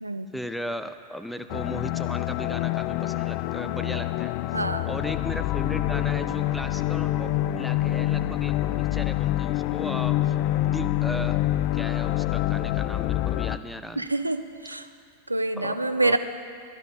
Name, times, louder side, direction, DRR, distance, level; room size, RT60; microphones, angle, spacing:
voice 1, 0.3-4.4 4.9-10.4 10.6-11.4 11.7-14.1 15.6-16.2, equal, ahead, 10 dB, 0.6 m, -37 dB
sound 1, 1.5-13.6, left 15 dB, 45° left, 0.3 m, -26 dB
voice 2, 4.5-4.9 14.0-14.9 15.3-16.2, right 2 dB, 85° right, 9 dB, 0.5 m, -26 dB
sound 2, 14.1-14.6, equal, 90° left, 1.5 m, -48 dB
22.5 x 11.0 x 2.8 m, 2.3 s
figure-of-eight pair, 90°, 0 cm